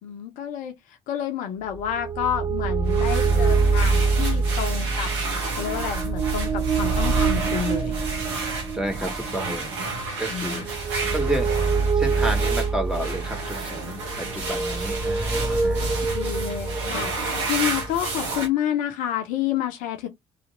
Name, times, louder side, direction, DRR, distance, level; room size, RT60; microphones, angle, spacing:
voice 1, 0.0-5.1 5.5-7.9 10.3-10.7 15.5-17.1 17.5-20.1, left 10 dB, 65° left, 0.7 m, -29 dB
sound 1, 1.7-18.4, right 4 dB, 25° right, 0.8 m, -25 dB
sound 2, 2.9-18.5, right 3 dB, 75° right, 1.1 m, -32 dB
voice 2, 8.7-9.9 10.2-10.7 11.1-15.9, right 1 dB, 5° right, 1.5 m, -31 dB
3.2 x 2.8 x 3.8 m
figure-of-eight pair, 45°, 15 cm